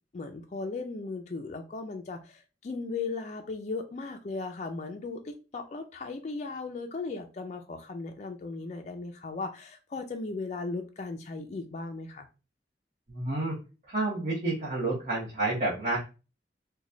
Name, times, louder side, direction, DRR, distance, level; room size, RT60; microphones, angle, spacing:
voice 1, 0.1-12.3, left 3 dB, 40° left, 0.3 m, -37 dB
voice 2, 13.1-13.6 13.9-16.0, right 2 dB, 45° right, 1.1 m, -29 dB
3.0 x 2.2 x 3.7 m
head